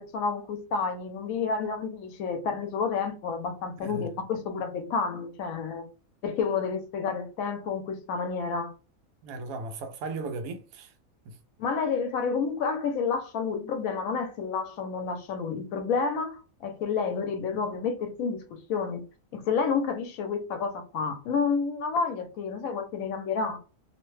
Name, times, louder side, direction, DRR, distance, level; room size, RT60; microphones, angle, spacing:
voice 1, 0.0-5.9 6.2-8.7 11.6-19.0 19.3-23.6, left 5 dB, 75° left, 1.0 m, -30 dB
voice 2, 9.2-10.9 11.3-11.4, right 3 dB, 85° right, 1.0 m, -36 dB
2.8 x 2.1 x 3.1 m
omnidirectional pair, 1.5 m